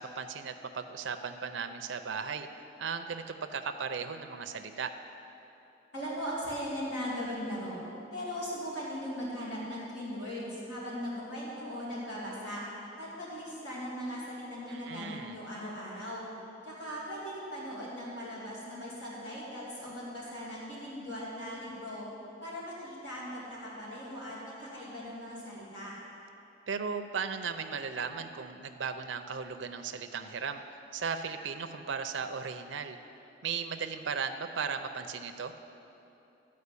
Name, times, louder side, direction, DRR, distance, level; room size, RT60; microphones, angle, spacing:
voice 1, 0.0-2.5 2.8-4.9 14.7-15.4 26.7-30.6 30.9-33.0 33.4-35.5, right 6 dB, 80° right, 7 dB, 0.5 m, -36 dB
voice 2, 5.9-7.8 8.1-12.6 13.0-16.3 16.6-22.1 22.4-25.9, equal, 75° left, -7 dB, 2.6 m, -39 dB
13.0 x 4.9 x 8.3 m, 2.9 s
head